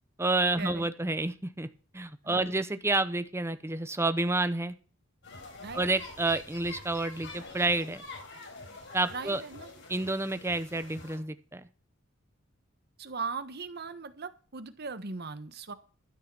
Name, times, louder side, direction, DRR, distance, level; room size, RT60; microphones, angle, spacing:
voice 1, 0.2-1.7 1.9-4.7 5.7-8.0 8.9-9.4 9.9-11.7, right 2 dB, 15° right, 0.8 m, -29 dB
sound 1, 5.2-11.2, left 3 dB, 60° left, 4.2 m, -46 dB
voice 2, 9.1-9.7 13.0-15.7, right 4 dB, 50° right, 1.2 m, -39 dB
12.5 x 6.5 x 7.5 m
head